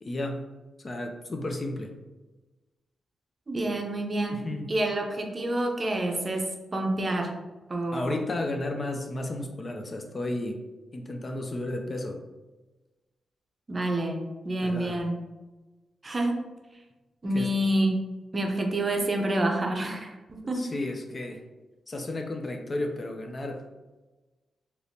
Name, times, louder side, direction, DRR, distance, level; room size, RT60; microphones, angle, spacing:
voice 1, 0.0-0.4 0.8-1.9 4.3-4.7 7.9-10.6 10.9-12.2 14.6-15.0 17.3-17.5 20.4-21.4 21.9-23.6, left 2 dB, 40° left, 3 dB, 0.5 m, -33 dB
voice 2, 3.5-7.3 7.7-8.2 13.7-15.2 16.0-16.5 17.2-18.0 18.3-20.7, right 1 dB, 35° right, 2 dB, 0.6 m, -28 dB
3.3 x 2.9 x 2.7 m, 1.2 s
cardioid pair, 70°, 0 cm